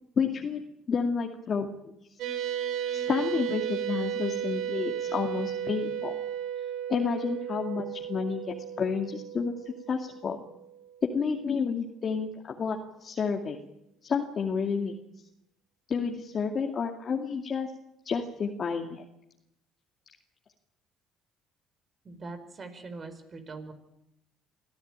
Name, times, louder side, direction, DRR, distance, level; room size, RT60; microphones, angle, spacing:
voice 1, 0.2-0.6 0.9-1.9 2.9-6.1 6.9-10.4 11.0-13.6 14.0-14.9 15.9-17.7 18.1-19.0, left 5 dB, 45° left, 2 dB, 2.4 m, -30 dB
sound 1, 2.2-10.9, right 9 dB, 75° right, 3.7 m, -34 dB
voice 2, 22.0-23.7, right 3 dB, 40° right, 9 dB, 4.9 m, -42 dB
25.0 x 15.0 x 9.0 m, 0.82 s
supercardioid pair, 75°, 0 cm